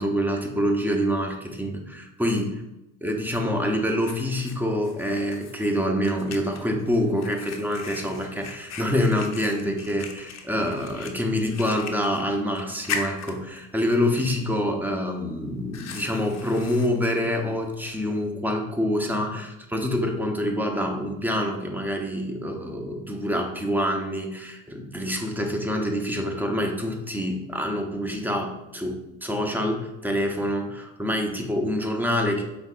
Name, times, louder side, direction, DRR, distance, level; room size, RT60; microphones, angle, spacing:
voice 1, 0.0-2.5 3.0-32.4, equal, 5° right, 2 dB, 0.8 m, -26 dB
Fire, 3.3-18.3, left 5 dB, 50° left, 0.7 m, -40 dB
5.2 x 3.2 x 2.4 m, 0.91 s
supercardioid pair, 70°, 35 cm